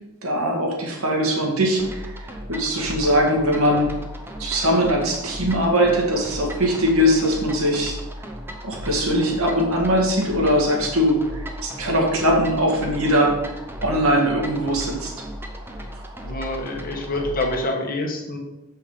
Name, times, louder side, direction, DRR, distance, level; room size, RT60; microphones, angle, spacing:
voice 1, 0.2-3.9 4.4-8.0 8.6-13.5 13.8-15.1, equal, 70° right, 0 dB, 1.9 m, -21 dB
sound 1, 1.8-17.7, equal, 10° right, 0.7 m, -35 dB
voice 2, 16.2-18.4, left 2 dB, 40° left, 2 dB, 1.3 m, -27 dB
7.2 x 5.6 x 5.0 m, 0.97 s
head